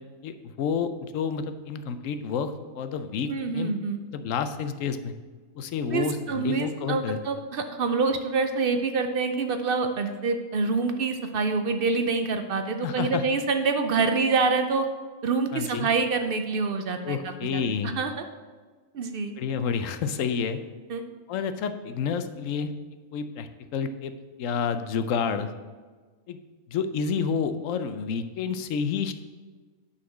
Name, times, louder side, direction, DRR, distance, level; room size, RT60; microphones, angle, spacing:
voice 1, 0.2-3.7 4.1-5.1 5.6-7.2 12.8-13.2 15.5-15.9 17.0-17.9 19.4-20.6 21.3-22.7 23.1-25.5 26.3-26.4 26.7-29.1, left 6 dB, 70° left, 10 dB, 1.0 m, -29 dB
voice 2, 3.3-4.0 5.9-14.9 15.2-18.1 18.9-19.3 20.9-21.0, right 4 dB, 65° right, 7 dB, 0.5 m, -26 dB
9.7 x 4.3 x 6.1 m, 1.4 s
omnidirectional pair, 1.5 m